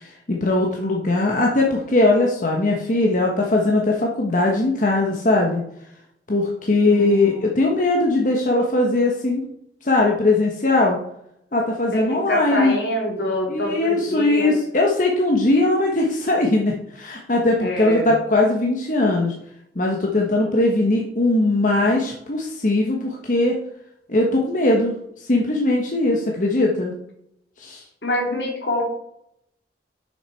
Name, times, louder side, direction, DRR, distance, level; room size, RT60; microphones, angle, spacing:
voice 1, 0.0-5.6 6.3-9.4 9.8-11.0 11.5-12.7 13.5-19.3 19.7-23.6 24.1-24.9 25.2-26.9 27.6-27.8, left 2 dB, 45° left, 0 dB, 1.1 m, -20 dB
voice 2, 6.9-7.6 11.9-14.6 17.6-18.1 28.0-28.8, left 1 dB, 75° left, 1 dB, 2.3 m, -25 dB
6.5 x 6.2 x 4.5 m, 0.75 s
head